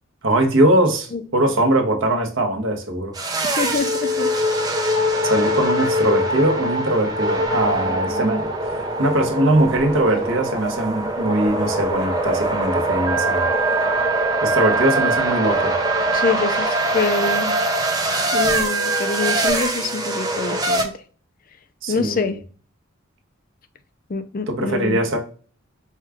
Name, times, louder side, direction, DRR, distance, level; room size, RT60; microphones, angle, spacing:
voice 1, 0.2-3.1 5.2-8.5 9.0-13.5 14.4-15.8 21.8-22.4 24.5-25.2, right 1 dB, 65° right, 0.9 m, -21 dB
sound 1, 3.1-20.8, right 1 dB, 20° right, 0.7 m, -23 dB
voice 2, 3.4-4.3 16.1-17.6 18.3-20.9 21.9-22.4 24.1-25.1, left 4 dB, 45° left, 0.5 m, -25 dB
Organ, 13.1-19.5, right 7 dB, 90° right, 0.4 m, -26 dB
4.6 x 2.3 x 3.4 m
head